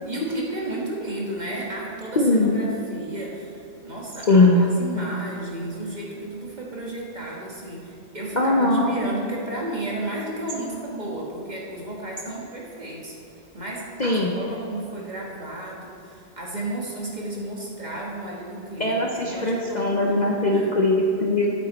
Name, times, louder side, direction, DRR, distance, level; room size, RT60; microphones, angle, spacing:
voice 1, 0.1-13.1 13.5-19.0 19.3-20.8, right 1 dB, 35° right, -3 dB, 1.6 m, -33 dB
voice 2, 2.2-2.6 4.3-4.6 8.4-9.0 14.0-14.3 18.8-21.5, left 2 dB, 40° left, -1 dB, 0.8 m, -20 dB
13.5 x 7.4 x 4.1 m, 2.5 s
omnidirectional pair, 1.3 m